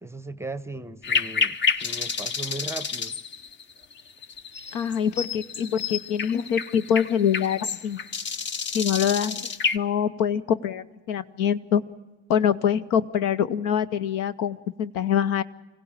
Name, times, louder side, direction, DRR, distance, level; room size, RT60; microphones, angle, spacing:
voice 1, 0.0-3.2, right 2 dB, 10° right, 0.8 m, -37 dB
sound 1, 1.0-9.8, left 5 dB, 30° left, 0.9 m, -29 dB
voice 2, 4.7-8.0 8.7-11.8 12.3-15.4, left 8 dB, 60° left, 0.9 m, -25 dB
25.0 x 16.5 x 8.9 m
hypercardioid pair, 70°, 34 cm